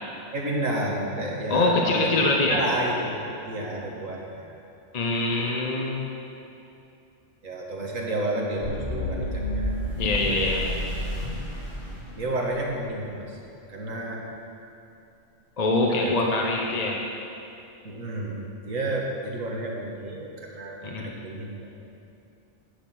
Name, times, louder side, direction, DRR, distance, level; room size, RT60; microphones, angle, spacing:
voice 1, 0.3-3.2 3.5-4.5 7.4-9.7 12.2-13.4 13.7-14.2 15.9-16.3 17.8-21.7, right 1 dB, 90° right, -2 dB, 2.0 m, -31 dB
voice 2, 1.5-2.6 4.9-6.1 10.0-10.7 15.6-17.0 20.8-21.1, left 2 dB, 35° left, -1 dB, 0.9 m, -24 dB
sound 1, 8.6-12.7, equal, 55° left, 3.1 m, -30 dB
11.5 x 8.4 x 6.1 m, 2.6 s
omnidirectional pair, 1.3 m